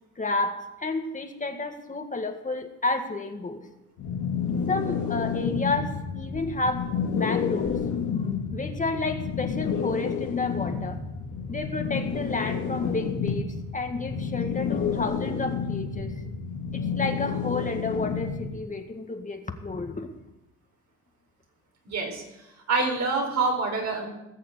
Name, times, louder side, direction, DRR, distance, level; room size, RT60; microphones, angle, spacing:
voice 1, 0.2-3.6 4.7-7.8 8.5-11.0 11.5-16.1 16.7-20.1, left 3 dB, 25° left, 5 dB, 1.8 m, -31 dB
sound 1, 4.0-18.6, left 6 dB, 80° left, 2.2 m, -30 dB
voice 2, 21.8-22.2 22.7-24.1, right 3 dB, 65° right, 1 dB, 4.8 m, -26 dB
19.0 x 6.7 x 8.4 m, 0.94 s
cardioid pair, 90°, 30 cm